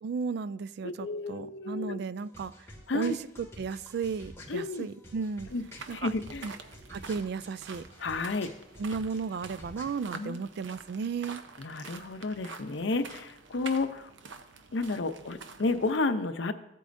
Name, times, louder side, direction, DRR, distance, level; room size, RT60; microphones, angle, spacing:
voice 1, 0.0-2.5 2.9-5.5 5.9-6.1 6.4-6.5 6.9-7.9 8.8-11.4, right 5 dB, 60° right, 16 dB, 0.3 m, -34 dB
voice 2, 0.8-2.0 2.9-3.2 4.5-4.9 5.5-5.6 5.9-6.5 8.0-8.5 10.1-10.4 11.6-14.1 14.7-16.5, left 3 dB, 80° left, 9 dB, 0.7 m, -31 dB
sound 1, 2.2-10.2, left 1 dB, 15° left, 2.3 m, -50 dB
sound 2, 5.5-16.0, right 4 dB, 85° right, 0.8 m, -47 dB
14.5 x 8.3 x 2.6 m, 0.82 s
head